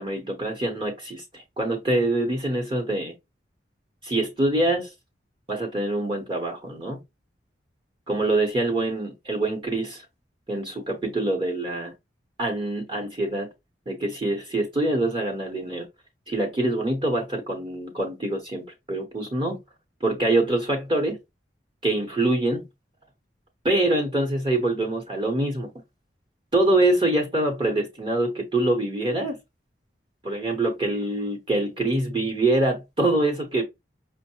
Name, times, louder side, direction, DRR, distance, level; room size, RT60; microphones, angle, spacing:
voice 1, 0.0-3.1 4.0-4.9 5.5-7.0 8.1-10.0 10.5-11.9 12.4-13.5 13.9-15.8 16.3-19.6 20.0-21.2 21.8-22.6 23.6-25.7 26.5-29.4 30.2-33.6, right 2 dB, 30° right, 0.8 m, -25 dB
5.3 x 2.0 x 2.8 m
head